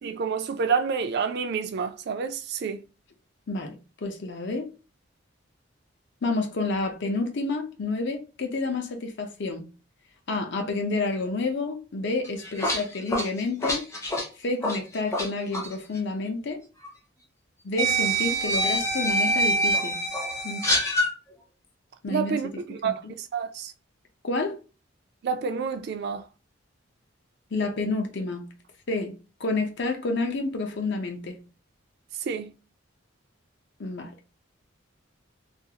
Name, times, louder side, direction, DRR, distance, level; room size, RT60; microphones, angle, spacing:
voice 1, 0.0-2.8 22.1-23.7 25.2-26.2 32.3-32.5, right 6 dB, 55° right, 0.3 m, -29 dB
voice 2, 3.5-4.7 6.2-9.7 10.3-13.8 14.4-16.6 17.6-20.0 20.4-20.7 22.0-22.4 22.8-23.1 24.2-24.6 27.5-28.5 28.9-31.4 33.8-34.1, left 3 dB, 60° left, 0.6 m, -29 dB
sound 1, 12.2-15.3 15.5-15.7 16.8-16.9 17.8-21.1, right 1 dB, 15° left, 0.5 m, -25 dB
2.5 x 2.4 x 2.8 m
head